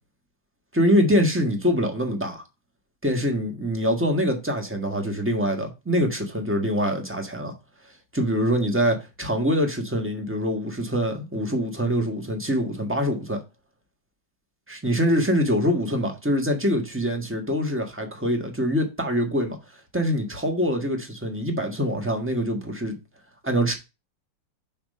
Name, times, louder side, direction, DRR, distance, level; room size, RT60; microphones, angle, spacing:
voice 1, 0.7-2.4 3.0-7.5 8.1-13.4 14.7-19.6 19.9-23.0 23.4-23.7, equal, 5° right, 1.3 m, -24 dB
5.8 x 4.4 x 5.4 m
omnidirectional pair, 2.0 m